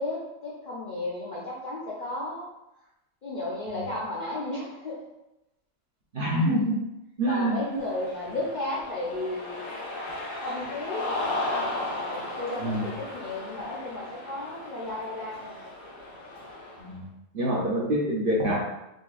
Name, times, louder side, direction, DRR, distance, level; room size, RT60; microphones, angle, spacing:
voice 1, 0.0-2.4 3.2-5.0 7.2-9.7 10.4-11.1 11.8-15.6, left 2 dB, 50° left, -7 dB, 0.6 m, -34 dB
voice 2, 6.1-6.8 7.2-7.6 12.6-12.9 16.8-17.0 17.3-18.6, equal, 50° right, -5 dB, 0.8 m, -25 dB
Cheering, 7.6-16.9, left 2 dB, 75° left, 1.2 m, -35 dB
3.8 x 3.0 x 2.4 m, 0.92 s
omnidirectional pair, 1.4 m